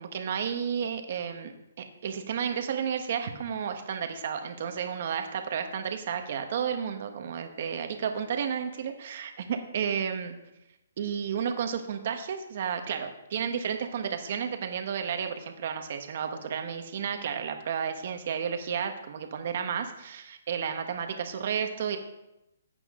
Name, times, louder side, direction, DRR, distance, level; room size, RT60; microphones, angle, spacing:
voice 1, 0.0-1.5 1.8-10.3 11.0-22.0, right 7 dB, 45° right, 6 dB, 1.4 m, -32 dB
15.0 x 8.4 x 3.8 m, 0.92 s
hypercardioid pair, 160°, 0 cm